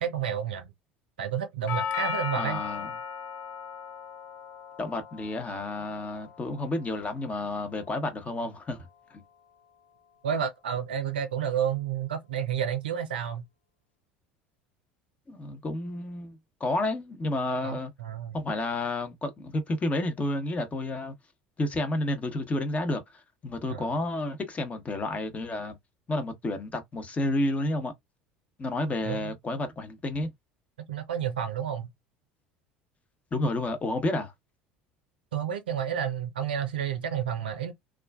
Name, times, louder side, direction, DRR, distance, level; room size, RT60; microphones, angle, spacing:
voice 1, 0.0-0.7 1.2-2.6 10.2-13.4 17.6-18.4 23.7-23.9 29.0-29.3 30.9-31.9 35.3-37.7, right 8 dB, 80° right, 0.5 m, -30 dB
Doorbell, 1.7-9.7, left 6 dB, 55° left, 0.6 m, -38 dB
voice 2, 2.4-2.9 4.8-9.2 15.3-17.9 18.3-21.1 21.6-25.8 26.1-27.9 28.6-30.3 33.3-34.3, left 2 dB, 25° left, 0.9 m, -31 dB
2.3 x 2.3 x 2.3 m
hypercardioid pair, 70°, 5 cm